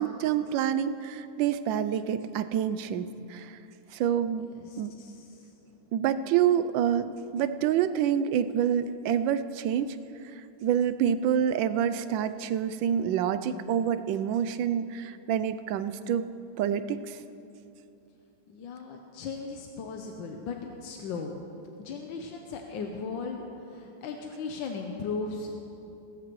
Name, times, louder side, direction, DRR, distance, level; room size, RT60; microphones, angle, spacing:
voice 1, 0.0-3.6 3.9-4.5 4.8-4.9 5.9-10.0 10.6-16.3 16.6-17.2, right 9 dB, 85° right, 12 dB, 1.3 m, -27 dB
voice 2, 4.6-5.3 18.5-21.3 21.8-23.5 23.7-25.5, left 4 dB, 85° left, 3 dB, 1.5 m, -37 dB
17.5 x 14.0 x 3.1 m, 2.8 s
omnidirectional pair, 2.0 m